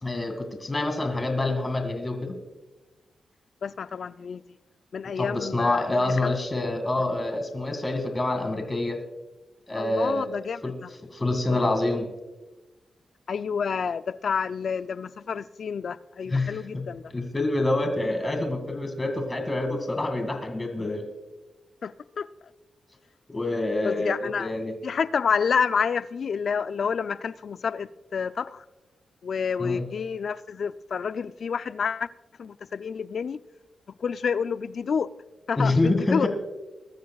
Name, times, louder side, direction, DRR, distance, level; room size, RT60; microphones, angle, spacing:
voice 1, 0.0-2.4 5.2-9.0 9.7-10.3 10.6-10.8 11.1-12.1 16.3-16.8 17.1-21.0 23.3-24.7 29.6-29.8 35.6-36.3, left 2 dB, 30° left, 2.1 m, -26 dB
voice 2, 3.6-4.4 4.9-6.3 9.8-10.9 11.5-11.6 13.3-17.0 21.8-22.3 23.8-24.5 24.8-28.6 29.2-32.1 32.4-33.4 34.0-35.1 35.5-36.3, left 6 dB, 65° left, 0.4 m, -29 dB
21.5 x 13.0 x 2.4 m
cardioid pair, 60°, 0 cm